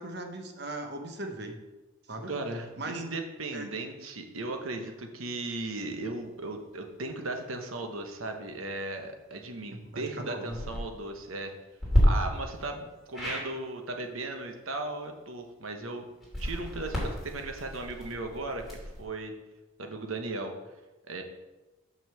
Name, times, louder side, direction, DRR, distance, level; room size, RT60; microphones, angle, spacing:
voice 1, 0.0-1.6 2.1-2.3 2.8-3.0 3.5-3.7 9.9-10.6, right 2 dB, 50° right, 5 dB, 1.0 m, -38 dB
voice 2, 2.3-11.5 12.0-16.0 16.4-19.3 19.8-20.5 21.1-21.2, right 2 dB, 85° right, 5 dB, 1.1 m, -37 dB
sound 1, 10.4-10.8 11.8-12.0 13.1-13.5 16.2-19.0, left 1 dB, ahead, 2.8 m, -31 dB
6.2 x 5.4 x 6.8 m, 1.1 s
head